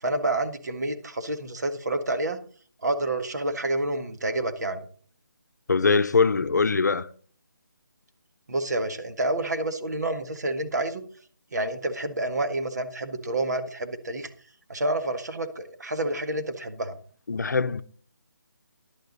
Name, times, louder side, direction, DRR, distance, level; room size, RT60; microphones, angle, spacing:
voice 1, 0.0-2.4 2.8-4.9 8.5-11.0 11.5-14.3 14.7-17.0, right 2 dB, 60° right, 1.7 m, -28 dB
voice 2, 5.7-7.1 17.3-17.8, left 4 dB, 60° left, 0.7 m, -22 dB
11.0 x 10.5 x 4.0 m
hypercardioid pair, 175°, 11 cm